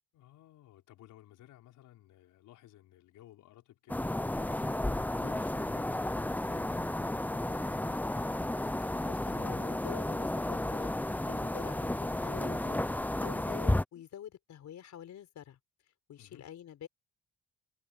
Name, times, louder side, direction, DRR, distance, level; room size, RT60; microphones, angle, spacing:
voice 1, 0.1-7.9 16.2-16.5, left 14 dB, 85° left, 5.2 m, -57 dB
sound 1, 3.9-13.8, left 1 dB, 5° left, 0.7 m, -32 dB
voice 2, 8.8-10.9 11.3-12.9 13.2-15.6 16.1-16.9, left 10 dB, 70° left, 4.5 m, -47 dB
cardioid pair, 90°, 30 cm